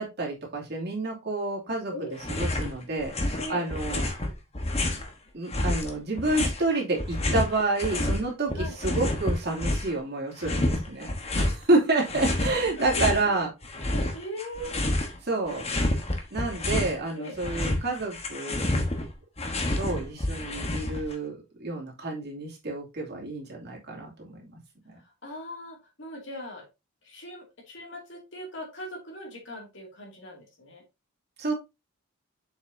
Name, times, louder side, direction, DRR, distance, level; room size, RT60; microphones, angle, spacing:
voice 1, 0.0-1.9 2.4-4.1 5.3-13.5 15.2-15.7 16.3-18.7 19.8-24.6 31.4-31.5, right 2 dB, 50° right, -2 dB, 2.6 m, -29 dB
sound 1, 2.2-2.7 3.0-5.1 5.5-8.2 8.5-10.0 10.4-11.6 12.0-13.2 13.6-15.2 15.5-17.0 17.3-21.1, left 1 dB, 30° left, 1.2 m, -29 dB
voice 2, 3.4-3.7 8.5-8.8 10.4-10.7 12.8-13.2 13.8-14.8 16.1-16.3 17.2-17.4 25.0-26.7 27.0-30.8, equal, 55° left, 1 dB, 2.4 m, -40 dB
7.1 x 5.9 x 2.7 m, 0.24 s
head